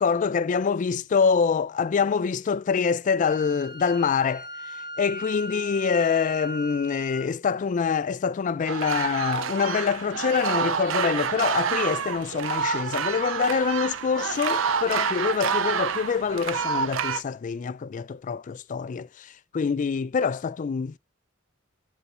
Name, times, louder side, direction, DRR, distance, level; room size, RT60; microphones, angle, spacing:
voice 1, 0.0-21.0, left 6 dB, 40° left, 0.3 m, -25 dB
Wind instrument woodwind instrument, 3.3-7.3, equal, 30° right, 1.7 m, -38 dB
sound 1, 8.6-17.2, right 6 dB, 70° right, 0.4 m, -28 dB
7.0 x 3.9 x 5.4 m
head